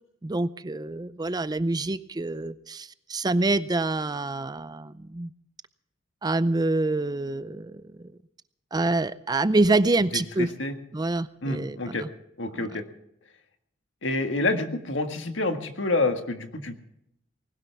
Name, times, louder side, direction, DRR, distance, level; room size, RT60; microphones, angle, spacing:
voice 1, 0.2-5.3 6.2-8.1 8.7-10.5 10.9-12.1 12.5-12.7, right 2 dB, 20° right, 15 dB, 0.5 m, -26 dB
voice 2, 10.4-10.7 11.4-12.0 12.4-12.8 14.0-16.8, left 2 dB, 70° left, 7 dB, 1.8 m, -28 dB
20.0 x 18.0 x 3.5 m, 0.76 s
head